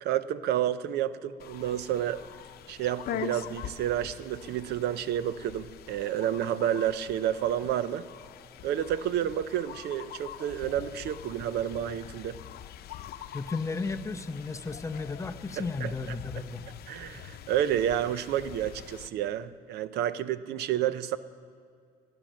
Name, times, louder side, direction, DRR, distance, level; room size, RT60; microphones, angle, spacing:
voice 1, 0.0-2.2 2.7-8.1 8.6-12.4 15.6-16.2 16.9-21.2, right 11 dB, 75° right, 15 dB, 0.6 m, -30 dB
sound 1, 1.4-19.1, left 10 dB, 65° left, 0.7 m, -44 dB
voice 2, 13.3-16.6, left 4 dB, 20° left, 8 dB, 0.7 m, -34 dB
20.5 x 9.1 x 6.3 m, 2.3 s
cardioid pair, 110°, 17 cm